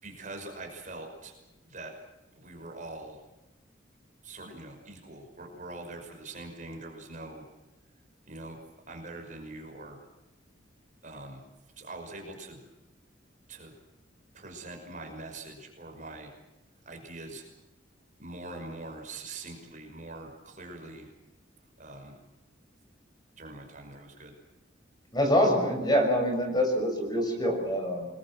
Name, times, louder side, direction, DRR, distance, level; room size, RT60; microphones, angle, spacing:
voice 1, 0.0-1.3 1.7-1.9 2.4-3.2 4.2-7.4 8.2-8.6 8.9-10.0 11.0-11.4 11.8-12.6 13.5-13.7 14.3-16.3 16.9-17.4 18.2-21.1 21.8-22.2 23.4-24.3, right 2 dB, 40° right, 3 dB, 5.7 m, -43 dB
voice 2, 25.1-28.1, equal, 20° left, 3 dB, 6.3 m, -25 dB
28.0 x 21.5 x 7.6 m, 1.0 s
head